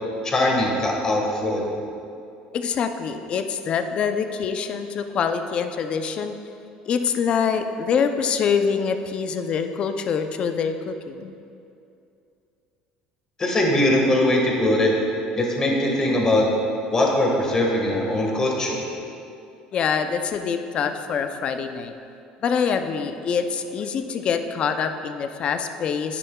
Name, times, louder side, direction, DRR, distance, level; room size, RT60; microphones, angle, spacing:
voice 1, 0.2-1.7 13.4-14.9 15.4-16.5 16.9-18.8, left 1 dB, 25° left, -1 dB, 1.6 m, -21 dB
voice 2, 2.5-6.3 6.9-11.3 19.7-21.9 22.4-26.2, left 6 dB, 40° left, 8 dB, 0.5 m, -25 dB
10.0 x 10.0 x 2.3 m, 2.6 s
cardioid pair, 130°, 3 cm